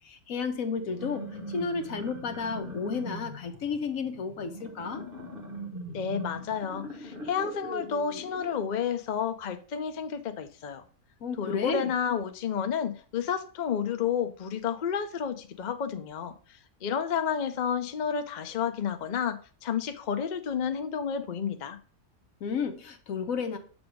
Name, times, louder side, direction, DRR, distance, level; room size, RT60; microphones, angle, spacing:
voice 1, 0.0-5.0 11.2-11.9 22.4-23.6, left 5 dB, 70° left, 7 dB, 1.2 m, -32 dB
sound 1, 0.8-8.7, equal, 40° right, 1.5 m, -41 dB
voice 2, 5.9-10.8 11.4-21.8, left 7 dB, 55° left, 8 dB, 0.5 m, -31 dB
7.0 x 3.5 x 5.0 m, 0.41 s
omnidirectional pair, 1.5 m